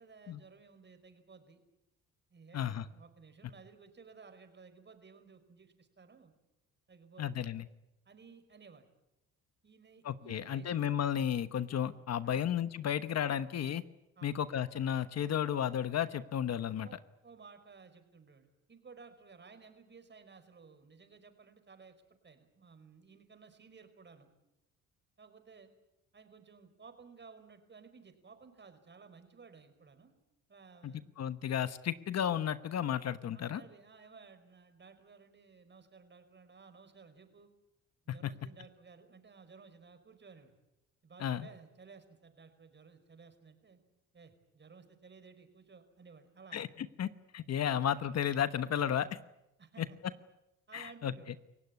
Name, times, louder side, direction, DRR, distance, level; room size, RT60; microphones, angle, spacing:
voice 1, 0.0-1.6 2.3-6.3 6.9-7.5 8.0-8.8 9.6-10.8 12.2-12.5 14.2-14.4 16.8-24.3 25.2-25.7 26.1-30.1 30.5-31.1 33.3-37.5 38.0-40.6 41.0-43.8 44.1-46.6 47.7-47.8 48.9-49.1 49.6-50.0 50.7-51.4, right 5 dB, 35° right, 8 dB, 5.0 m, -56 dB
voice 2, 2.5-2.8 7.2-7.7 10.0-13.8 14.2-16.9 30.8-33.6 38.2-38.3 41.2-41.5 46.5-47.1 47.3-49.1 49.8-49.9 50.7-51.1, left 9 dB, 55° left, 13 dB, 1.1 m, -33 dB
28.5 x 17.0 x 9.8 m, 0.92 s
cardioid pair, 90°, 30 cm